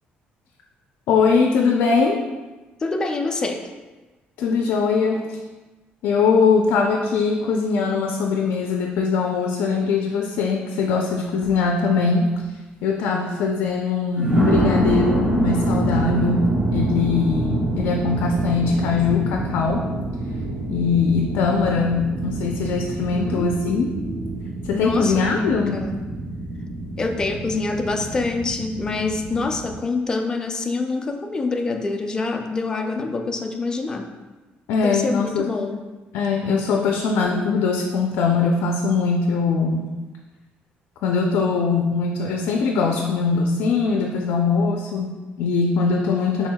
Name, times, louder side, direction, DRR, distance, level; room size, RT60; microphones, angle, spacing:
voice 1, 1.1-2.2 4.4-5.4 6.0-12.3 12.8-19.9 20.7-23.9 24.7-25.8 34.7-35.5 36.1-39.9 41.0-46.5, left 4 dB, 85° left, 1 dB, 0.4 m, -21 dB
voice 2, 2.8-3.7 23.1-24.4 24.7-26.1 27.0-34.1 34.8-35.8, left 3 dB, 20° left, 3 dB, 0.4 m, -26 dB
sound 1, 11.4-11.7 12.3-12.4 14.1-29.7, right 1 dB, 15° right, 0.8 m, -26 dB
6.1 x 3.5 x 2.2 m, 1.2 s
cardioid pair, 170°, 4 cm